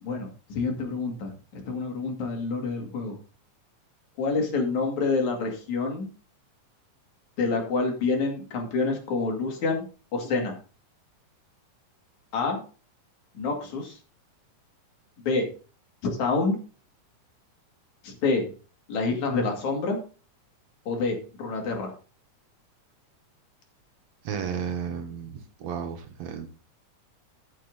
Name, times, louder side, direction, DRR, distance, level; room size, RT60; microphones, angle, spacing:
voice 1, 0.0-3.2 4.2-6.1 7.4-9.8 10.1-10.6 12.3-12.6 13.4-14.0 15.2-15.5 16.0-16.6 18.0-18.5 18.9-20.0 20.9-21.9, left 3 dB, 70° left, 2 dB, 3.8 m, -27 dB
voice 2, 24.2-26.5, right 7 dB, 65° right, 6 dB, 2.3 m, -33 dB
13.5 x 6.7 x 4.0 m, 0.37 s
omnidirectional pair, 3.5 m